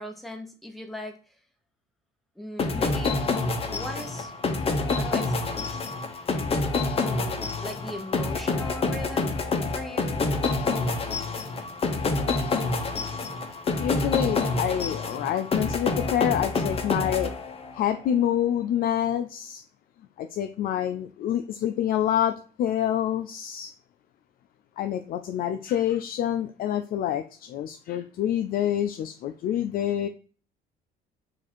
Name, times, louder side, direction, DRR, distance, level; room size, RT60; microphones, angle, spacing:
voice 1, 0.0-1.3 2.4-3.1 3.7-4.3 4.9-5.8 7.0-9.3 9.7-10.2, left 1 dB, ahead, 1.0 m, -39 dB
sound 1, 2.6-17.9, left 3 dB, 35° left, 0.8 m, -27 dB
voice 2, 13.8-17.3 17.7-19.6 20.2-22.3 22.6-23.7 24.8-30.1, left 10 dB, 60° left, 0.4 m, -27 dB
4.8 x 2.6 x 4.2 m
cardioid pair, 110°, 17 cm